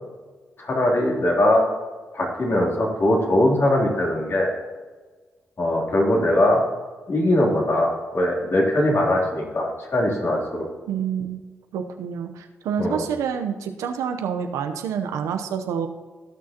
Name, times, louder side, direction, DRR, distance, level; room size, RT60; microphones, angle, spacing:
voice 1, 0.6-1.6 2.1-4.5 5.6-6.6 7.1-10.7 12.8-13.0, left 1 dB, 50° left, -2 dB, 3.0 m, -21 dB
voice 2, 10.9-11.4 11.7-15.9, right 7 dB, 85° right, 6 dB, 0.7 m, -27 dB
16.5 x 6.3 x 2.9 m, 1.4 s
supercardioid pair, 45°, 5 cm